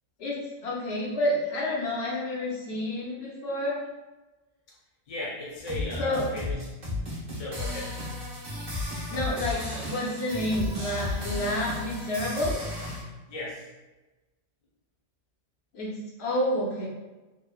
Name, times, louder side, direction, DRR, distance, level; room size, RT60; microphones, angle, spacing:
voice 1, 0.2-3.8 6.0-6.2 9.1-12.6 15.7-15.9 16.2-16.9, left 1 dB, 70° left, -4 dB, 0.8 m, -29 dB
voice 2, 5.1-6.7 7.4-7.9 13.3-13.7, left 2 dB, 40° left, -5 dB, 0.6 m, -36 dB
sound 1, 5.6-13.0, left 2 dB, 45° right, 0.8 m, -34 dB
3.0 x 2.0 x 2.3 m, 1.1 s
omnidirectional pair, 1.2 m